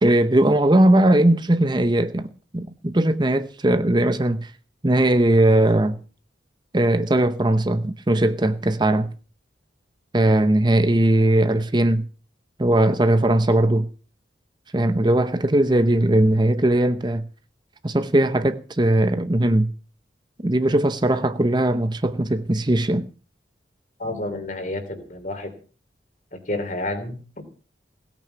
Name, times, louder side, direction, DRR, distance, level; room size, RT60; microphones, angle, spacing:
voice 1, 0.0-2.3 2.5-4.5 4.8-6.0 6.7-9.1 10.1-12.1 12.6-13.9 14.7-17.2 17.8-19.7 20.4-23.1, right 1 dB, 25° right, 0.8 m, -19 dB
voice 2, 24.0-25.5 26.5-27.4, left 1 dB, 45° left, 3.3 m, -30 dB
17.5 x 9.1 x 6.9 m
head